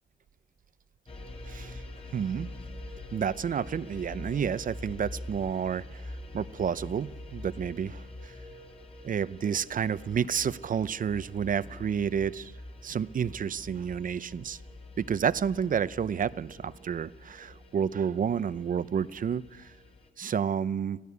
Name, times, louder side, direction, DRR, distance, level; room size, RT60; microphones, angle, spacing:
sound 1, 1.1-20.1, left 2 dB, 30° left, 3.7 m, -45 dB
voice 1, 1.5-1.8 2.1-2.5 3.1-6.0 6.3-8.3 9.0-12.5 12.8-14.6 15.0-19.7 20.2-21.0, right 7 dB, 45° right, 17 dB, 0.7 m, -30 dB
25.0 x 15.5 x 8.4 m, 1.3 s
cardioid pair, 90°, 20 cm